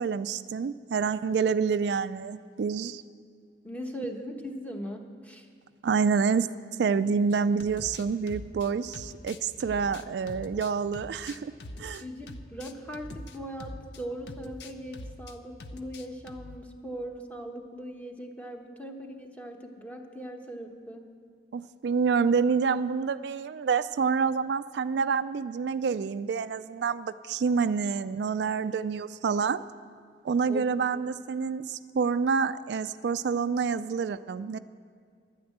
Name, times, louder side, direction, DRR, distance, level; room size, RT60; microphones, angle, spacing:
voice 1, 0.0-3.0 5.8-6.5 6.8-11.5 11.8-12.0 21.5-29.6 30.2-34.6, right 5 dB, 70° right, 12 dB, 0.3 m, -27 dB
voice 2, 3.6-5.5 12.0-21.0 30.4-30.8, equal, 10° left, 3 dB, 1.0 m, -39 dB
sound 1, 7.3-14.0 14.3-15.3 15.6-16.6, left 2 dB, 70° left, 0.7 m, -43 dB
11.5 x 9.5 x 8.5 m, 2.1 s
head